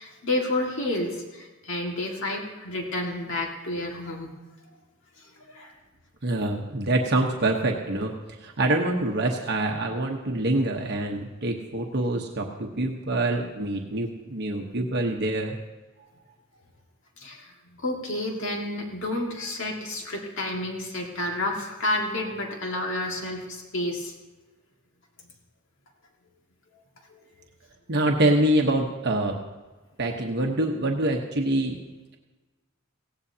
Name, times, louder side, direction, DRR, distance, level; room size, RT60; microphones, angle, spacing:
voice 1, 0.0-4.3 5.2-5.7 17.2-17.5 17.8-24.1 27.1-27.2, left 1 dB, 65° left, 0 dB, 1.9 m, -30 dB
voice 2, 6.2-15.6 27.9-29.4 30.0-31.8, right 1 dB, 55° right, 1 dB, 1.1 m, -25 dB
18.5 x 16.5 x 2.8 m, 1.2 s
head